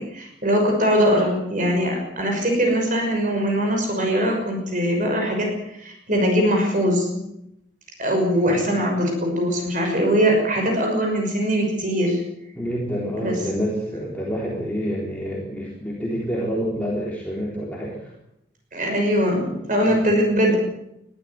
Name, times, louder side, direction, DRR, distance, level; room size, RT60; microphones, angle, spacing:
voice 1, 0.0-5.5 5.8-7.2 8.0-12.2 13.2-13.4 18.7-20.6, equal, 45° right, 2 dB, 6.0 m, -21 dB
voice 2, 12.5-18.1 19.5-19.6 19.9-20.1, equal, 10° left, -4 dB, 3.9 m, -28 dB
20.5 x 14.5 x 9.5 m, 0.80 s
head